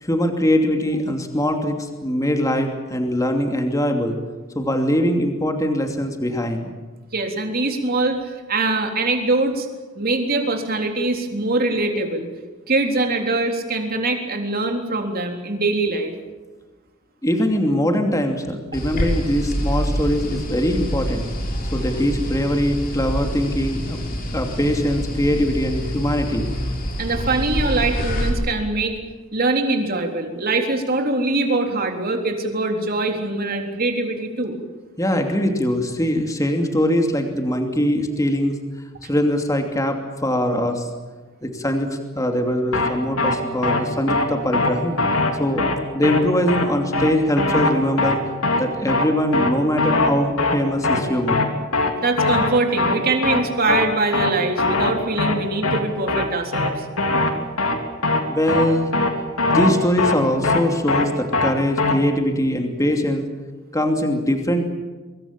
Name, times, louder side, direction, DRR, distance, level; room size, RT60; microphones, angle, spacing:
voice 1, 0.0-4.2 4.5-6.7 17.2-21.3 21.7-24.0 24.3-26.5 35.0-38.6 39.1-40.9 41.4-45.0 45.4-45.6 45.9-48.2 48.6-51.5 58.3-58.9 59.4-63.3 63.7-64.7, equal, 15° left, 4 dB, 2.8 m, -22 dB
voice 2, 7.1-9.7 10.0-12.3 12.7-16.1 27.0-29.0 29.3-34.5 52.0-56.9, right 2 dB, 45° right, 4 dB, 3.7 m, -23 dB
sound 1, 18.7-28.3, equal, 45° left, 5.6 m, -26 dB
sound 2, 42.7-42.9 43.2-43.3 43.6-43.8 44.1-44.2 44.5-44.7 45.0-45.3 45.6-45.7 46.0-46.2 46.5-46.6 46.9-47.1 47.4-47.7 48.0-48.1 48.4-48.6 48.9-49.1 49.3-49.5 49.8-50.1 50.4-50.6 50.8-51.0 51.3-51.5 51.7-51.9 52.2-52.5 52.8-53.0 53.2-53.4 53.7-53.8 54.1-54.3 54.6-54.9 55.2-55.3 55.6-55.8 56.1-56.2 56.5-56.7 57.0-57.3 57.6-57.8 58.0-58.2 58.5-58.6 58.9-59.1 59.4-59.7 60.0-60.1 60.4-60.6 60.9-61.1 61.3-61.5 61.8-61.9, left 3 dB, 85° left, 3.2 m, -20 dB
24.0 x 23.0 x 7.4 m, 1.3 s
head